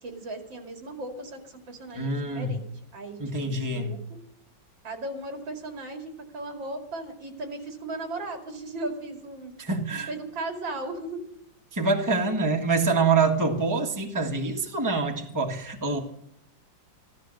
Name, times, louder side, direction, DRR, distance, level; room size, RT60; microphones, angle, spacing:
voice 1, 0.0-4.2 4.8-9.5 9.9-11.3, right 2 dB, 80° right, 3 dB, 3.2 m, -37 dB
voice 2, 1.9-2.6 3.2-4.0 9.6-10.1 11.7-16.0, right 3 dB, 10° right, 2 dB, 1.5 m, -25 dB
15.0 x 13.0 x 6.5 m, 0.72 s
omnidirectional pair, 2.0 m